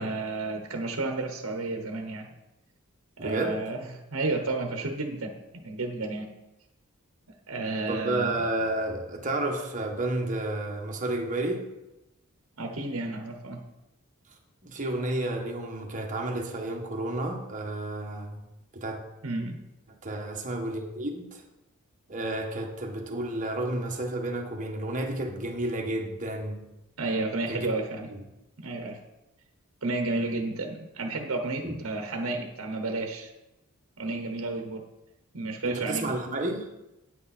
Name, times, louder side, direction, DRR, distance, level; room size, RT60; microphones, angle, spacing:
voice 1, 0.0-2.3 3.2-6.3 7.5-8.4 12.6-13.6 19.2-19.6 27.0-28.1 28.6-29.0 29.8-33.3 34.0-34.9 35.3-36.1, right 2 dB, 65° right, 4 dB, 1.1 m, -32 dB
voice 2, 3.2-3.6 7.9-11.6 14.6-18.4 18.7-19.0 20.0-21.4 22.1-26.6 27.5-27.7 31.6-31.7 35.6-36.7, right 1 dB, 35° right, 1 dB, 1.5 m, -31 dB
9.4 x 8.3 x 4.2 m, 0.94 s
head